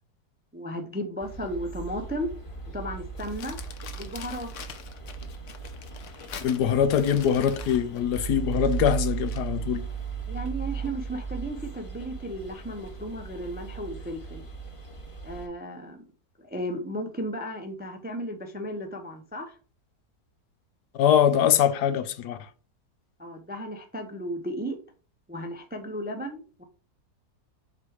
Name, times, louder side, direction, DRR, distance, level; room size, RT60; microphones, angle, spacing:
voice 1, 0.5-2.3 2.7-3.6 3.9-4.5 10.3-14.4 15.2-16.0 16.4-19.6 23.2-24.8 25.3-26.6, equal, 15° right, 0.3 m, -34 dB
sound 1, 1.2-15.5, right 6 dB, 25° left, 0.8 m, -36 dB
Crumpling crinkling, 3.2-9.5, left 8 dB, 60° left, 1.0 m, -45 dB
voice 2, 6.4-9.9 20.9-22.5, left 9 dB, 90° left, 1.3 m, -23 dB
7.4 x 3.4 x 4.7 m
omnidirectional pair, 1.7 m